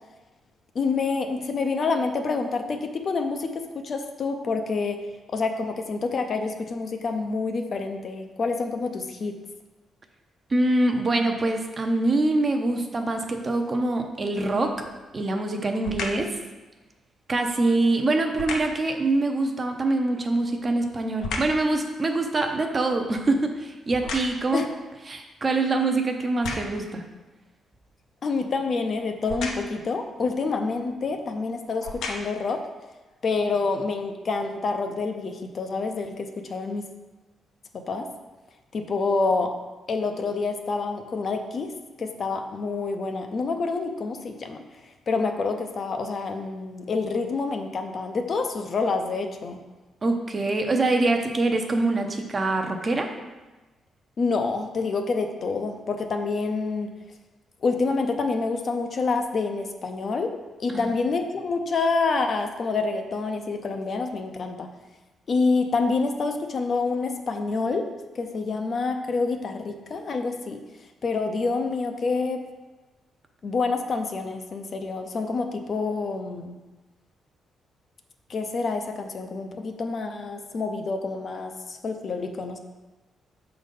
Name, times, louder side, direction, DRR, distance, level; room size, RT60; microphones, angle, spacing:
voice 1, 0.7-5.0 5.3-9.4 24.5-24.7 28.2-32.6 33.2-36.9 37.7-38.1 38.7-39.5 39.9-44.6 45.1-49.6 54.2-56.9 57.6-60.3 60.6-64.7 65.3-67.9 68.2-70.6 71.0-72.4 73.4-76.6 78.3-82.6, left 4 dB, 40° left, 5 dB, 0.5 m, -27 dB
voice 2, 10.5-14.7 15.1-16.3 17.3-24.6 25.1-27.0 50.0-53.1 60.7-60.9, right 2 dB, 25° right, 4 dB, 0.6 m, -24 dB
sound 1, 14.6-15.0 15.8-16.3 18.3-18.8 20.2-21.7 22.1-24.6 25.3-25.4 26.2-26.9 29.2-29.8 30.9-31.0 31.7-32.5 33.1-33.2, left 3 dB, 80° left, 0.8 m, -35 dB
6.3 x 3.9 x 5.2 m, 1.2 s
cardioid pair, 145°, 0 cm